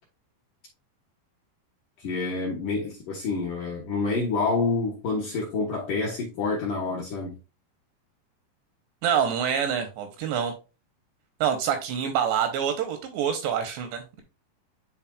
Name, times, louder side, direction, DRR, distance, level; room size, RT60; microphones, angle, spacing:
voice 1, 2.0-7.3, left 3 dB, 70° left, 2.0 m, -28 dB
voice 2, 9.0-10.5 11.4-14.2, right 8 dB, 80° right, 2.6 m, -26 dB
10.0 x 4.1 x 2.3 m
omnidirectional pair, 5.4 m